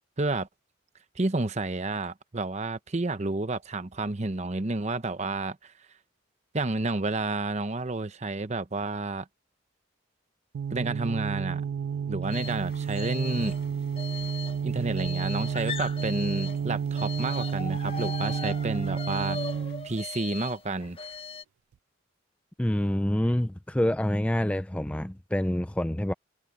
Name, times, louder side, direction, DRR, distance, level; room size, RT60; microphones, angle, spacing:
voice 1, 0.2-0.5 1.2-5.7 6.5-9.3 10.7-11.6 12.1-13.6 14.6-19.4 19.8-21.0, right 2 dB, 35° right, 0.9 m, -30 dB
sound 1, 10.5-19.9, right 7 dB, 80° right, 0.3 m, -31 dB
Walk footsteps, 12.2-19.9, left 2 dB, 55° left, 6.4 m, -57 dB
sound 2, 12.3-12.6 12.9-13.7 14.0-16.7 16.9-21.4, left 4 dB, 30° left, 1.0 m, -38 dB
voice 2, 22.6-26.1, left 1 dB, 5° left, 0.5 m, -27 dB
head